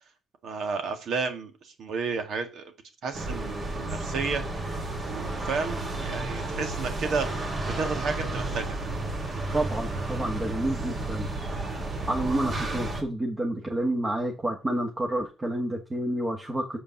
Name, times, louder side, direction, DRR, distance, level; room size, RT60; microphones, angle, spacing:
voice 1, 0.4-2.7 3.0-4.4 5.1-7.3 7.7-8.8, right 4 dB, 70° right, 7 dB, 1.8 m, -32 dB
sound 1, 3.1-13.0, right 2 dB, 40° right, 2.4 m, -32 dB
voice 2, 9.5-11.3 12.1-16.8, right 1 dB, 25° right, 1 dB, 1.6 m, -29 dB
6.7 x 5.3 x 7.1 m, 0.31 s
cardioid pair, 90°, 0 cm